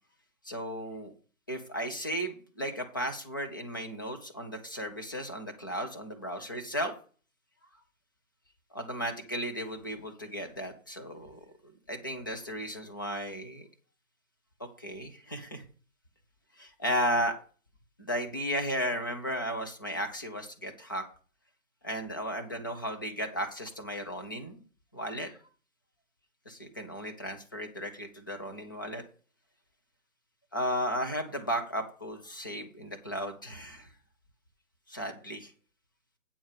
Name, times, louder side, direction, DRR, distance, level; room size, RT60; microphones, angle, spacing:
voice 1, 0.4-1.1 1.5-6.9 8.7-11.4 11.9-13.7 14.8-15.7 16.6-17.4 18.0-21.0 21.8-24.6 24.9-25.3 26.5-29.0 30.5-33.9 34.9-35.5, equal, 15° left, 5 dB, 0.6 m, -34 dB
8.6 x 4.6 x 7.2 m, 0.38 s
figure-of-eight pair, 155°, 41 cm